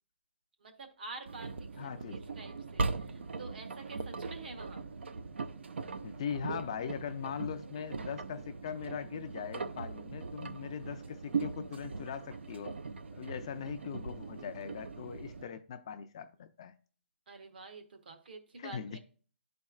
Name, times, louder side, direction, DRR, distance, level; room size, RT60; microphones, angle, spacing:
voice 1, 0.6-1.7 2.1-4.8 17.3-19.0, right 3 dB, 55° right, 1.1 m, -48 dB
Engine, 1.3-15.4, right 4 dB, 75° right, 0.5 m, -40 dB
voice 2, 1.8-2.2 6.0-12.8 13.1-16.8 18.6-19.0, left 8 dB, 30° left, 0.3 m, -40 dB
11.5 x 4.3 x 2.3 m
hypercardioid pair, 170°, 6 cm